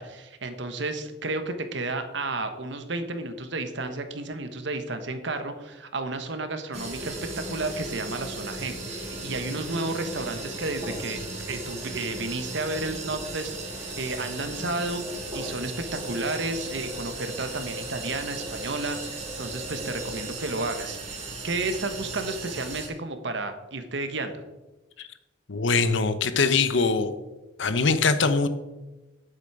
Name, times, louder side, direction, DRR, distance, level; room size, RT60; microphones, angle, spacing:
voice 1, 0.0-11.2 11.5-24.4, right 2 dB, 65° right, 8 dB, 1.2 m, -32 dB
sound 1, 6.7-22.9, right 2 dB, 35° right, 3.0 m, -36 dB
voice 2, 25.5-27.1 27.6-28.5, left 4 dB, 70° left, 11 dB, 0.8 m, -22 dB
10.0 x 7.9 x 4.8 m, 1.1 s
head